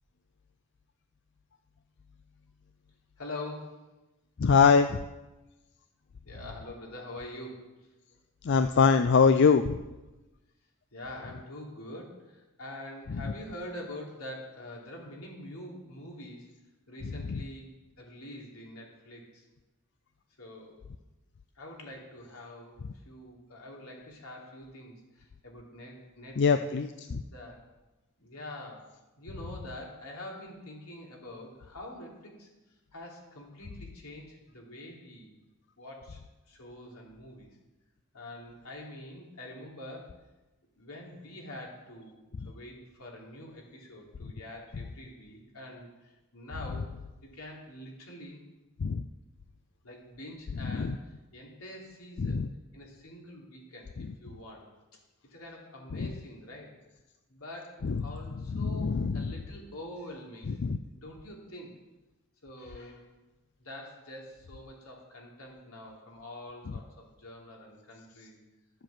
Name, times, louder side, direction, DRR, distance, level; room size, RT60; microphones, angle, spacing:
voice 1, 3.2-3.8 6.2-7.7 10.9-16.5 16.9-17.7 18.0-19.4 20.4-20.8 21.5-26.7 27.3-27.6 28.2-28.9 29.2-32.5 32.9-35.3 35.8-36.2 36.5-37.5 38.1-40.1 40.8-42.2 42.4-46.9 47.3-48.4 49.8-52.4 52.7-54.7 55.3-56.7 57.3-60.6 60.9-61.7 62.4-63.1 63.6-68.4, left 1 dB, 80° left, -2 dB, 3.2 m, -45 dB
voice 2, 4.4-5.0 8.4-9.8 17.3-17.4 26.4-27.2 48.8-49.0 50.6-51.0 52.2-52.5 55.9-56.1 57.8-58.0 58.5-59.3 60.5-60.8, left 5 dB, 50° left, 9 dB, 0.4 m, -24 dB
12.0 x 7.9 x 7.4 m, 1.1 s
head